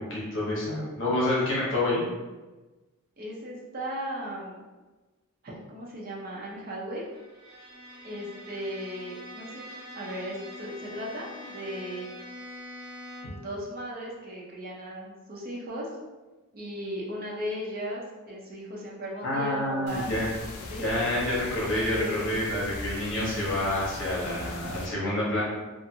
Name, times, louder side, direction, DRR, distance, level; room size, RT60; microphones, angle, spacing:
voice 1, 0.1-2.0 19.2-20.3 20.8-25.4, left 1 dB, 55° left, -5 dB, 0.8 m, -28 dB
voice 2, 3.2-4.6 5.4-7.0 8.0-9.6 9.9-12.1 13.2-15.9 16.5-20.1 20.7-21.0 21.7-22.3, equal, 40° right, -4 dB, 0.6 m, -36 dB
Bowed string instrument, 7.1-13.5, left 1 dB, 75° right, 0.9 m, -44 dB
sound 1, 19.9-24.9, left 2 dB, 85° left, 0.4 m, -39 dB
2.5 x 2.5 x 2.7 m, 1.2 s
head